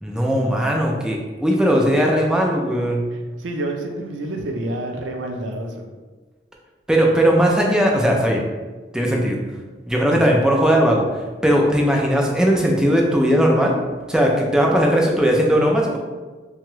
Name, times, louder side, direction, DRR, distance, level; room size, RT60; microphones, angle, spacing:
voice 1, 0.0-3.0 6.9-8.4 8.9-9.4 9.9-11.1 11.4-13.8 14.1-16.0, equal, 5° right, -1 dB, 0.4 m, -18 dB
voice 2, 3.1-5.9 10.1-10.3, right 1 dB, 85° right, 2 dB, 0.5 m, -29 dB
2.9 x 2.3 x 3.1 m, 1.3 s
head